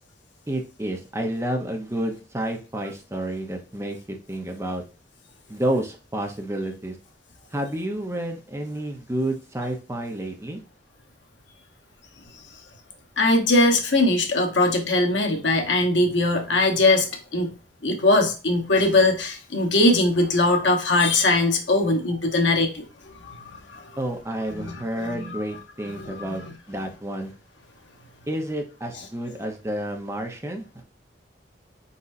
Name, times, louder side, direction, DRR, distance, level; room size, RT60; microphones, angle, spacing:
voice 1, 0.5-4.8 5.5-7.0 7.5-10.6 24.0-27.3 28.3-30.8, right 1 dB, 15° right, 4 dB, 0.7 m, -30 dB
voice 2, 13.2-17.1 17.3-17.5 17.8-22.8 23.1-23.9 24.5-25.4 26.0-26.4, left 2 dB, 85° left, 2 dB, 1.1 m, -21 dB
4.4 x 4.1 x 2.6 m, 0.33 s
head